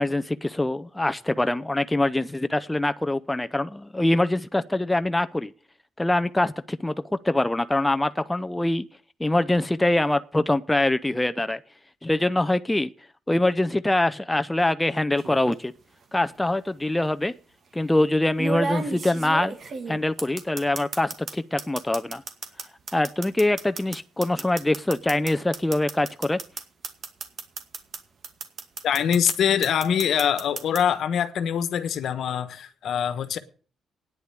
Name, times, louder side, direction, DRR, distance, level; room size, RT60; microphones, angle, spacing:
voice 1, 0.0-5.5 6.0-6.9 7.2-8.8 9.2-11.6 12.0-12.9 13.3-15.7 16.1-17.3 17.7-19.6 19.9-22.2 22.9-26.4, left 1 dB, 10° left, 0.6 m, -24 dB
sound 1, 15.2-15.5 16.7-16.8 18.4-21.3 21.6-28.0 28.2-29.3 29.6-30.8, right 4 dB, 50° right, 2.1 m, -32 dB
voice 2, 28.8-33.4, left 8 dB, 70° left, 1.2 m, -24 dB
9.7 x 8.2 x 8.2 m
cardioid pair, 90°, 0 cm